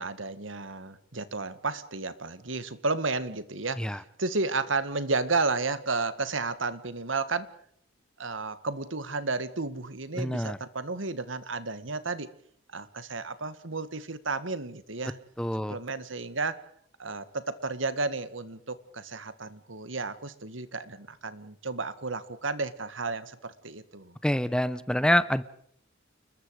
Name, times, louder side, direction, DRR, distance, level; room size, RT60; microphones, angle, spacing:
voice 1, 0.0-7.5 8.2-12.3 12.7-15.2 15.7-16.6 17.0-24.2, right 3 dB, 70° right, 13 dB, 1.9 m, -32 dB
voice 2, 10.2-10.6 15.4-15.8 24.2-25.4, equal, 5° left, 15 dB, 0.8 m, -26 dB
29.5 x 21.5 x 4.9 m, 0.64 s
head